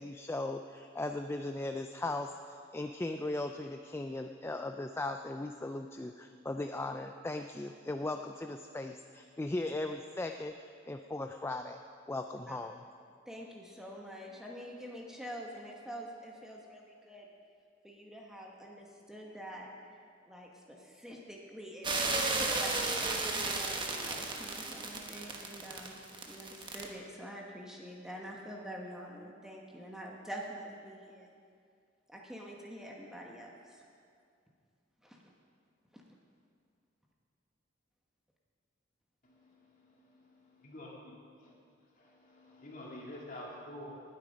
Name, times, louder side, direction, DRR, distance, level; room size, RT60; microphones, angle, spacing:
voice 1, 0.0-10.5 10.9-11.8 12.1-12.8, left 2 dB, 10° left, 6 dB, 0.3 m, -38 dB
voice 2, 13.2-17.3 17.8-19.7 20.3-23.8 24.0-26.0 26.2-31.3 32.1-33.8 35.0-35.2 35.9-36.0, equal, 5° right, -2 dB, 1.2 m, -46 dB
sound 1, 21.8-26.9, right 3 dB, 25° right, 1.2 m, -33 dB
voice 3, 39.2-40.9 41.4-41.5 42.0-44.0, left 1 dB, 45° left, -3 dB, 2.8 m, -48 dB
19.0 x 8.7 x 5.2 m, 2.3 s
head